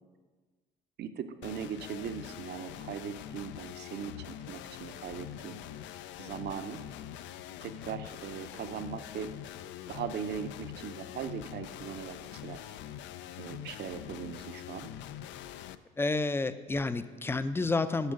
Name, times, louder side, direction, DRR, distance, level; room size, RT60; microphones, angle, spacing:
voice 1, 1.0-5.6 6.2-6.8 7.6-9.3 9.9-12.6 13.4-14.9, right 8 dB, 60° right, 9 dB, 0.6 m, -39 dB
sound 1, 1.4-15.7, left 11 dB, 75° left, 0.4 m, -44 dB
voice 2, 16.0-18.1, left 3 dB, 10° left, 13 dB, 0.4 m, -30 dB
8.2 x 5.1 x 6.4 m, 1.4 s
supercardioid pair, 80°, 19 cm